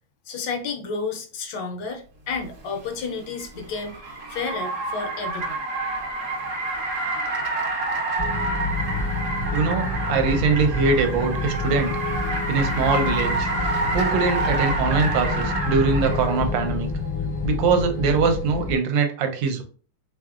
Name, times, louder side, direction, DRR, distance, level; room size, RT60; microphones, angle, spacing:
voice 1, 0.3-4.0 4.3-5.6, left 4 dB, 70° left, 4 dB, 1.1 m, -31 dB
Car, 2.5-16.4, right 2 dB, 55° right, 0.9 m, -28 dB
sound 1, 8.2-18.7, left 3 dB, 40° left, 0.5 m, -28 dB
voice 2, 9.5-11.9 12.5-13.5 13.9-16.9 17.4-19.6, right 4 dB, 75° right, 6 dB, 1.3 m, -22 dB
3.8 x 3.3 x 2.4 m, 0.40 s
omnidirectional pair, 2.2 m